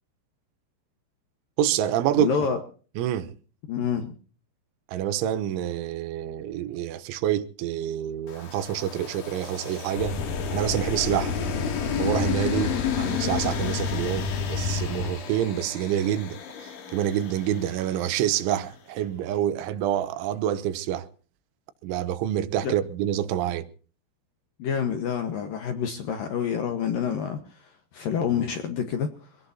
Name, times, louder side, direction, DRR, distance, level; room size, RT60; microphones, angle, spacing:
voice 1, 1.6-2.3 3.0-3.3 4.9-10.2 10.5-11.4 12.0-16.4 16.6-21.1 21.8-23.7, right 11 dB, 90° right, 3.5 m, -27 dB
voice 2, 2.2-2.6 3.7-4.1 22.6-22.7 24.6-29.4, left 7 dB, 65° left, 2.5 m, -28 dB
sound 1, 8.3-18.6, left 8 dB, 80° left, 4.9 m, -33 dB
sound 2, 9.9-15.1, left 3 dB, 45° left, 5.0 m, -30 dB
25.0 x 17.5 x 2.8 m
omnidirectional pair, 5.3 m